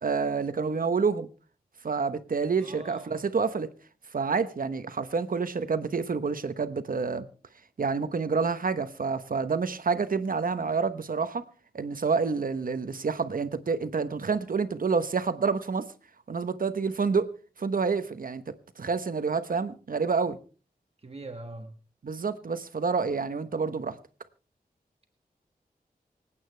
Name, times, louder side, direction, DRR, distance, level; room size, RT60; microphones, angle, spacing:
voice 1, 0.0-1.3 1.8-3.7 4.1-7.3 7.8-11.5 11.7-15.9 16.3-20.4 22.0-24.0, right 5 dB, 65° right, 1.1 m, -28 dB
voice 2, 2.6-3.3 21.0-21.8, right 2 dB, 40° right, 1.5 m, -42 dB
25.5 x 8.9 x 3.4 m
wide cardioid pair, 90°, 16 cm